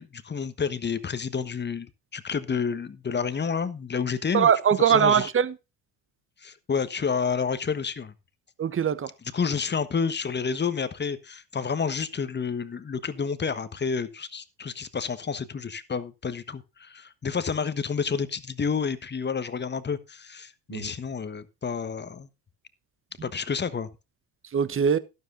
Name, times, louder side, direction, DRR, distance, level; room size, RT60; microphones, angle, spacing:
voice 1, 0.0-5.3 6.4-8.1 9.3-22.3 23.2-23.9, left 6 dB, 20° left, 1.2 m, -30 dB
voice 2, 4.3-5.5 8.6-9.1 20.7-20.9 24.5-25.0, right 8 dB, 25° right, 1.0 m, -21 dB
12.5 x 12.5 x 2.6 m
figure-of-eight pair, 60°, 48 cm